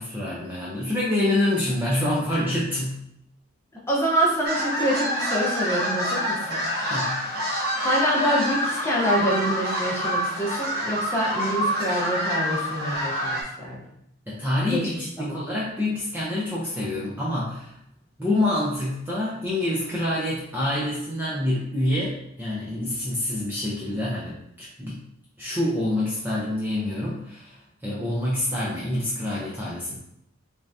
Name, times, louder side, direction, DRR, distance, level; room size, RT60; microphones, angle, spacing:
voice 1, 0.0-3.0 6.9-7.2 14.3-17.8 18.2-25.0 25.4-30.0, left 1 dB, 10° right, -7 dB, 0.5 m, -27 dB
voice 2, 3.9-6.6 7.8-13.8 14.7-14.8 15.2-15.4, right 1 dB, 10° left, -5 dB, 0.8 m, -26 dB
sound 1, 4.4-13.4, equal, 45° right, 0.9 m, -27 dB
3.7 x 3.3 x 2.6 m, 0.77 s
head